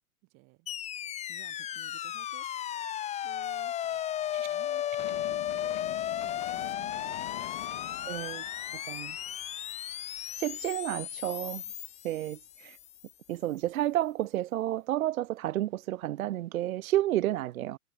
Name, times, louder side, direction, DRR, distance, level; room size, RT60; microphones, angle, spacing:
voice 1, 0.2-0.7 1.2-7.9 8.5-9.2, right 29 dB, 35° right, 4.3 m, -57 dB
sound 1, 0.7-12.9, left 11 dB, 15° left, 1.0 m, -35 dB
sound 2, 5.0-11.0 11.4-11.5, left 28 dB, 30° left, 0.9 m, -47 dB
voice 2, 8.1-8.4 8.9-9.1 10.4-11.6 12.0-12.8 13.3-17.8, right 14 dB, 65° right, 0.6 m, -31 dB
hypercardioid pair, 125°, 45 cm